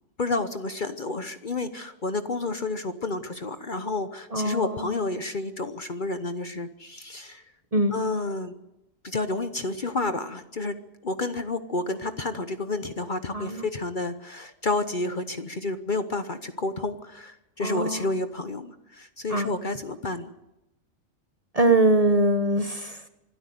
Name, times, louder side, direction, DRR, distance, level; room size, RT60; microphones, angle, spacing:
voice 1, 0.2-7.4 7.9-8.5 9.0-10.8 11.0-20.3, left 2 dB, 40° left, 10 dB, 1.0 m, -30 dB
voice 2, 4.3-4.8 7.7-7.9 13.3-13.6 17.6-18.1 19.3-19.5 21.5-23.0, right 2 dB, 30° right, 9 dB, 1.1 m, -22 dB
24.5 x 12.5 x 9.4 m, 0.92 s
omnidirectional pair, 1.4 m